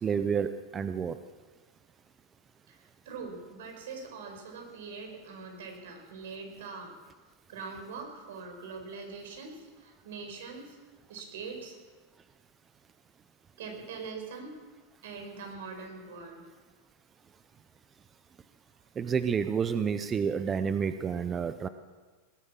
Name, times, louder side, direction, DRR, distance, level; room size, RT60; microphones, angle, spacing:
voice 1, 0.0-1.2 19.0-21.7, right 6 dB, 20° right, 11 dB, 0.6 m, -29 dB
voice 2, 2.7-6.9 7.5-10.8 11.1-11.8 13.6-14.5 15.0-16.4, right 4 dB, 80° right, 3 dB, 5.0 m, -42 dB
19.5 x 10.0 x 7.5 m, 1.4 s
supercardioid pair, 140°, 0 cm